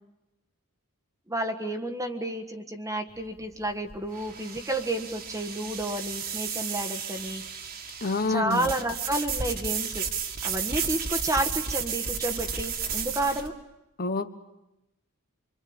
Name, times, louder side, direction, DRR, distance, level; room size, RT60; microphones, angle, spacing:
voice 1, 1.3-7.4 8.3-10.1 10.4-13.5, right 1 dB, 15° right, 5 dB, 1.5 m, -31 dB
sound 1, 3.1-13.5, right 6 dB, 45° right, 2.3 m, -33 dB
voice 2, 8.0-8.7 14.0-14.4, left 3 dB, 45° left, 9 dB, 1.3 m, -28 dB
26.5 x 25.0 x 8.8 m, 0.91 s
head